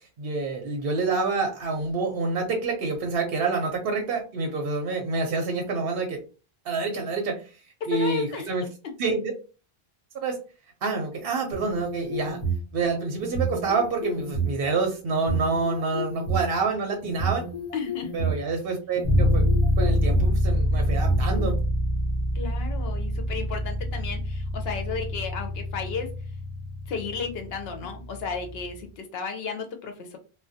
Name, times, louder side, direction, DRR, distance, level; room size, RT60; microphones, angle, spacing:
voice 1, 0.2-6.2 6.7-7.4 7.9-8.6 9.0-9.3 10.2-10.4 10.8-12.4 12.7-17.5 18.1-19.4 19.8-21.6, right 4 dB, 70° right, 2 dB, 0.7 m, -27 dB
voice 2, 7.8-8.7 17.7-18.1 22.3-26.1 26.9-30.2, left 5 dB, 75° left, 5 dB, 0.8 m, -33 dB
sound 1, 11.5-12.7 13.2-14.5 15.1-16.4 17.0-18.4 19.0-20.3 20.9-21.5, right 4 dB, 40° left, 0.8 m, -29 dB
sound 2, 19.0-28.8, left 1 dB, 30° right, 0.5 m, -26 dB
2.4 x 2.1 x 2.5 m, 0.34 s
omnidirectional pair, 1.1 m